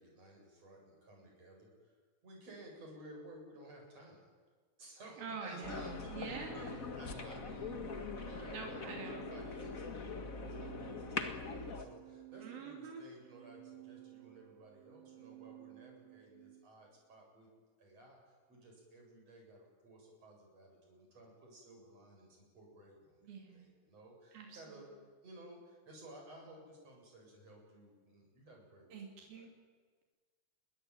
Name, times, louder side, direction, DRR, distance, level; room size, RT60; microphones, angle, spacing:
voice 1, 0.0-2.0 2.2-4.3 4.8-8.9 9.3-17.5 17.8-24.9 25.2-29.0 29.3-29.5, right 1 dB, 45° right, -1 dB, 9.2 m, -56 dB
voice 2, 5.2-6.8 8.5-9.3 12.4-13.0 23.2-23.7 24.3-24.6 28.9-29.5, right 5 dB, 90° right, 1 dB, 5.0 m, -46 dB
sound 1, 5.6-11.9, left 4 dB, 40° left, 1.3 m, -42 dB
Organ, 5.9-16.7, right 8 dB, 75° right, 3.6 m, -55 dB
29.0 x 22.0 x 9.2 m, 1.5 s
omnidirectional pair, 4.1 m